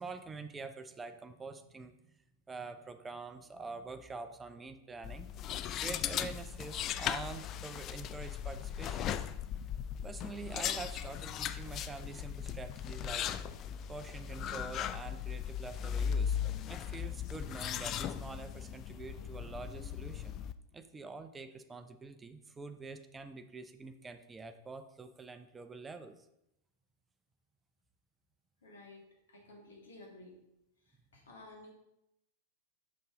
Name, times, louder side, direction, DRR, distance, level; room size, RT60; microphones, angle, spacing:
voice 1, 0.0-1.9 2.5-5.3 5.8-9.1 10.0-13.3 13.6-16.4 16.7-20.4 20.7-26.1, right 4 dB, 15° right, 9 dB, 0.5 m, -46 dB
sound 1, 5.0-20.5, left 9 dB, 35° left, 0.3 m, -38 dB
voice 2, 28.6-30.4 31.1-31.7, left 2 dB, 65° left, -1 dB, 2.0 m, -53 dB
6.1 x 5.4 x 3.8 m, 0.86 s
figure-of-eight pair, 90°, 0 cm